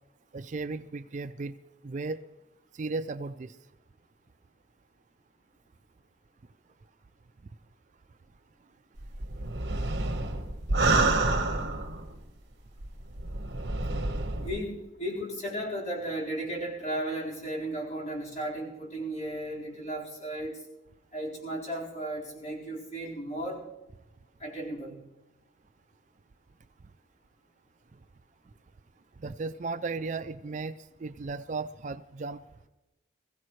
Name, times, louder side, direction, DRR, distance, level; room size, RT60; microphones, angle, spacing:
voice 1, 0.3-1.6 1.8-2.3 2.7-3.6 10.3-10.4 29.2-32.4, right 3 dB, 40° right, 0.4 m, -35 dB
sound 1, 9.0-12.2 12.8-14.6, right 2 dB, 60° right, 1.3 m, -28 dB
voice 2, 14.4-20.6 21.1-23.7 24.4-25.0, right 1 dB, 35° left, 4.5 m, -35 dB
21.5 x 15.5 x 3.2 m
head